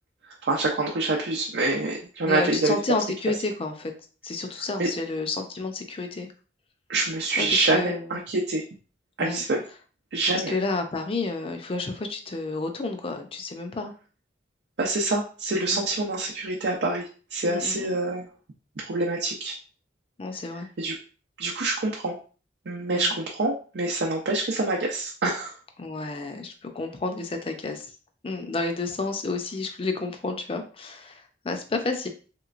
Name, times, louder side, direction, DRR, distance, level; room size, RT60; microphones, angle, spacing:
voice 1, 0.4-2.7 4.8-4.9 6.9-8.6 9.2-9.6 10.1-10.6 14.8-18.2 18.8-19.5 20.8-20.9 21.4-22.2 22.7-25.5, right 2 dB, 70° right, -2 dB, 0.6 m, -26 dB
voice 2, 2.2-3.9 4.2-6.3 7.4-8.2 9.2-9.4 10.3-13.9 15.7-15.9 17.5-18.0 20.2-20.7 22.9-23.1 25.8-27.9 28.2-32.1, left 3 dB, 30° left, 6 dB, 0.5 m, -30 dB
3.2 x 3.0 x 2.5 m, 0.38 s
head